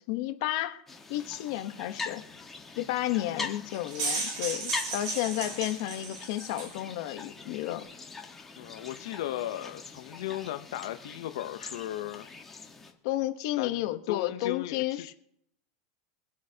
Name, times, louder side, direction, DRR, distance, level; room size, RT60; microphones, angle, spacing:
voice 1, 0.1-0.8 1.1-2.2 2.8-7.8 13.0-15.1, left 15 dB, 55° left, 1.1 m, -32 dB
sound 1, 0.9-12.9, left 4 dB, 10° left, 1.5 m, -43 dB
sound 2, 3.7-6.8, right 4 dB, 55° right, 6.0 m, -34 dB
voice 2, 8.6-12.3 13.6-13.8 14.1-15.1, left 13 dB, 75° left, 0.8 m, -36 dB
24.0 x 8.3 x 2.9 m
supercardioid pair, 155°, 3 cm